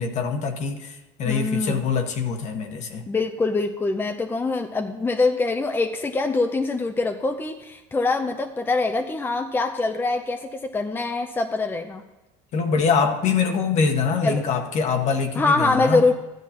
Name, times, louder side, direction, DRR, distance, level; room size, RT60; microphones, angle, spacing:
voice 1, 0.0-3.1 12.5-16.0, left 5 dB, 50° left, 6 dB, 1.3 m, -24 dB
voice 2, 1.2-1.8 3.1-12.0 14.2-14.4 15.4-16.1, left 3 dB, 15° left, 5 dB, 0.6 m, -24 dB
14.0 x 10.5 x 2.9 m, 1.0 s
supercardioid pair, 115°, 15 cm